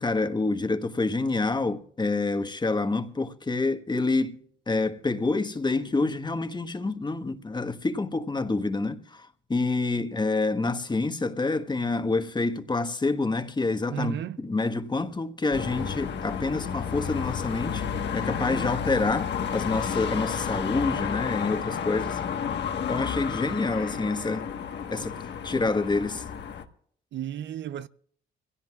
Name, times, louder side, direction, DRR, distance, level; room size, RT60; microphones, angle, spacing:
voice 1, 0.0-4.4 4.7-17.9 18.1-22.2 22.9-24.5 24.9-25.2 25.4-26.2, left 3 dB, 20° left, 1.4 m, -27 dB
voice 2, 13.9-14.4 23.5-23.8 27.1-27.9, right 10 dB, 65° right, 0.6 m, -34 dB
sound 1, 15.5-26.6, left 7 dB, 60° left, 1.4 m, -31 dB
25.0 x 17.0 x 2.4 m
cardioid pair, 90°, 20 cm